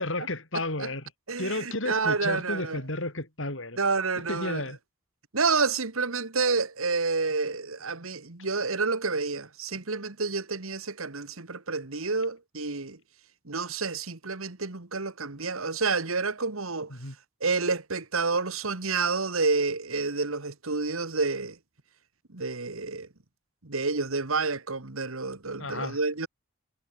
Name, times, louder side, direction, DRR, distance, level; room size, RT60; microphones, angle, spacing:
voice 1, 0.0-1.1 1.4-3.8 4.2-4.8 16.9-17.2 25.6-26.0, left 2 dB, 65° left, 6.2 m, -32 dB
voice 2, 1.3-2.8 3.8-4.6 5.3-13.0 13.5-16.9 17.4-21.6 22.3-23.1 23.6-26.3, right 4 dB, 85° right, 1.9 m, -29 dB
head